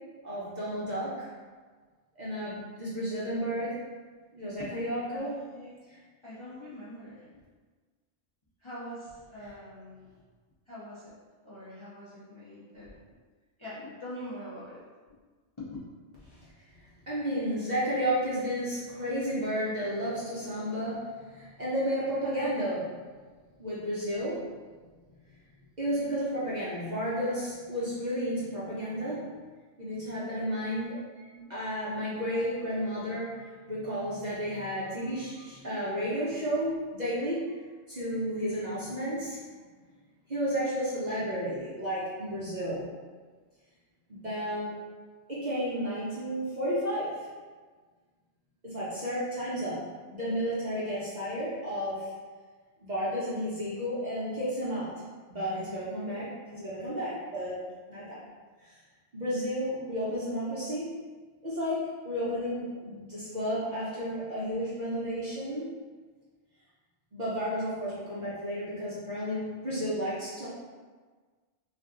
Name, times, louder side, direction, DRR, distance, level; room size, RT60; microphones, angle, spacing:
voice 1, 0.2-1.3 2.2-3.8 4.3-5.4 16.3-16.5 17.0-23.0 23.6-24.5 25.8-29.3 29.8-31.0 31.5-37.6 37.9-39.4 40.3-42.9 44.1-44.7 45.3-47.3 48.6-52.1 52.8-54.9 55.3-57.6 57.9-58.2 58.6-58.7 59.1-61.0 61.4-65.8 67.1-70.5, equal, 45° right, -9 dB, 0.7 m, -32 dB
voice 2, 5.1-5.8 6.2-7.3 8.6-10.1 10.7-11.2 11.4-12.9 13.6-14.8 15.6-15.8 31.1-31.5 32.1-32.5, left 1 dB, 30° left, -11 dB, 0.6 m, -44 dB
2.5 x 2.3 x 3.6 m, 1.4 s
omnidirectional pair, 1.2 m